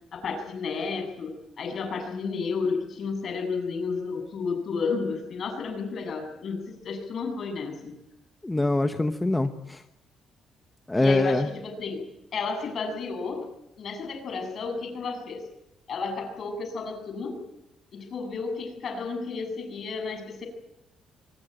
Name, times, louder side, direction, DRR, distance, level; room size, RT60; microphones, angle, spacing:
voice 1, 0.1-7.9 11.0-12.0 12.3-13.5 13.8-15.5 15.9-17.4 17.9-20.5, left 4 dB, 50° left, 6 dB, 7.6 m, -32 dB
voice 2, 8.4-9.8 10.9-11.5, left 2 dB, 10° left, 8 dB, 1.1 m, -24 dB
24.0 x 21.0 x 9.1 m, 0.90 s
cardioid pair, 125°, 0 cm